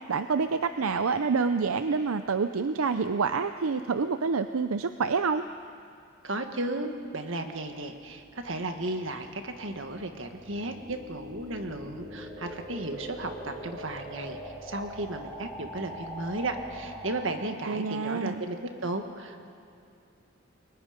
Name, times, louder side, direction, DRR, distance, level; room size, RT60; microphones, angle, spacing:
voice 1, 0.1-5.4 17.7-18.4, right 5 dB, 85° right, 10 dB, 0.6 m, -27 dB
voice 2, 6.2-19.4, right 2 dB, 65° right, 6 dB, 1.7 m, -34 dB
sound 1, 8.2-17.5, equal, 15° right, 3.1 m, -42 dB
29.5 x 22.5 x 5.2 m, 2.5 s
head